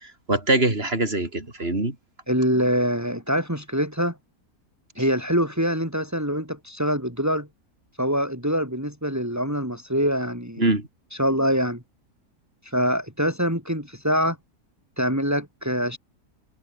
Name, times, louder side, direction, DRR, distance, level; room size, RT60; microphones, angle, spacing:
voice 1, 0.0-2.0 10.6-10.9, right 2 dB, 40° right, 4.7 m, -23 dB
voice 2, 2.3-4.2 5.0-7.5 8.0-10.6 11.2-11.8 12.6-14.4 15.0-16.0, equal, 10° right, 6.6 m, -24 dB
omnidirectional pair, 1.6 m